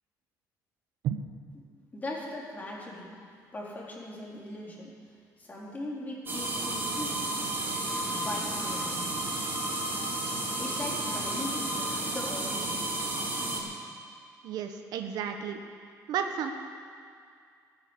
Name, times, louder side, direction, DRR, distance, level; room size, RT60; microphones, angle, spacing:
voice 1, 1.9-3.2 3.5-4.9 5.4-7.2 8.0-9.3 10.6-12.8, left 1 dB, 25° left, -4 dB, 3.8 m, -39 dB
sound 1, 6.3-13.6, right 2 dB, 30° right, 4.0 m, -32 dB
voice 2, 14.4-15.6 16.1-16.5, right 8 dB, 75° right, 6 dB, 1.1 m, -32 dB
15.0 x 9.9 x 8.1 m, 2.3 s
cardioid pair, 110°, 7 cm